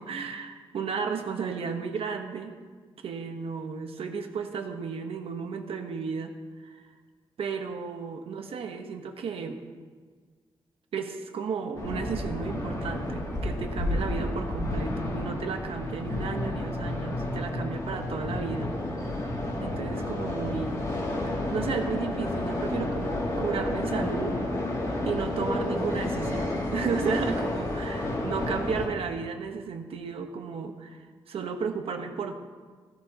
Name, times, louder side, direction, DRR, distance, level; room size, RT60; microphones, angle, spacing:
voice 1, 0.0-2.5 3.0-6.3 6.6-6.9 7.4-9.6 10.9-19.2 19.6-20.8 21.2-24.4 25.0-32.3, right 5 dB, 85° right, 5 dB, 1.2 m, -33 dB
sound 1, 11.7-28.9, left 1 dB, 40° left, 2.6 m, -31 dB
16.0 x 14.5 x 3.0 m, 1.5 s
wide cardioid pair, 140°, 9 cm